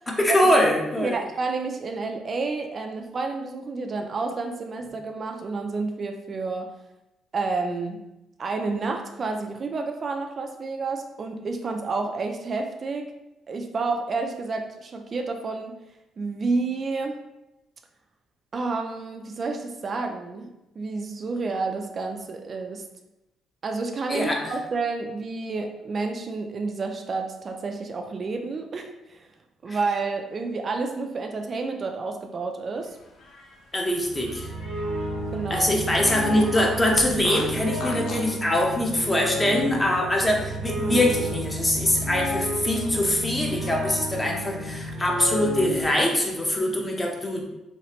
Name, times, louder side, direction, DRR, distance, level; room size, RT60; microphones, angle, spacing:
voice 1, 0.1-1.2 24.1-24.4 29.7-29.8 33.7-34.5 35.5-47.4, left 1 dB, 15° left, 0 dB, 0.7 m, -23 dB
voice 2, 1.0-6.7 7.3-8.0 8.4-13.1 13.5-15.8 16.2-17.2 18.5-20.5 20.8-22.8 23.6-29.3 29.6-33.0 35.3-35.7, right 3 dB, 40° right, 4 dB, 0.3 m, -30 dB
Fart, 33.0-35.1 35.4-35.5 36.0-38.4, left 3 dB, 70° left, 0.5 m, -37 dB
sound 1, 34.0-45.8, equal, 75° right, 0.6 m, -31 dB
3.2 x 3.1 x 2.9 m, 0.92 s
cardioid pair, 125°, 0 cm